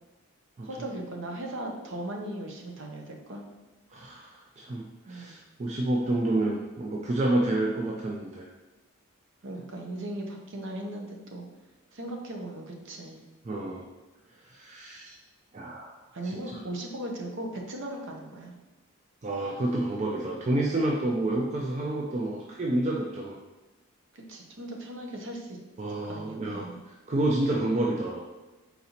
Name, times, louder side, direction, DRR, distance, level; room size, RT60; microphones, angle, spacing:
voice 1, 0.6-3.4 5.1-5.4 9.4-11.4 11.9-13.2 16.1-18.5 24.1-25.6 26.1-26.7, right 1 dB, 55° right, 2 dB, 0.7 m, -38 dB
voice 2, 3.9-8.5 13.5-13.9 14.5-15.2 15.5-16.0 16.2-16.3 19.2-23.4 25.8-26.7 27.1-28.3, right 1 dB, 30° right, -1 dB, 0.3 m, -29 dB
4.1 x 4.0 x 2.8 m, 1.1 s
head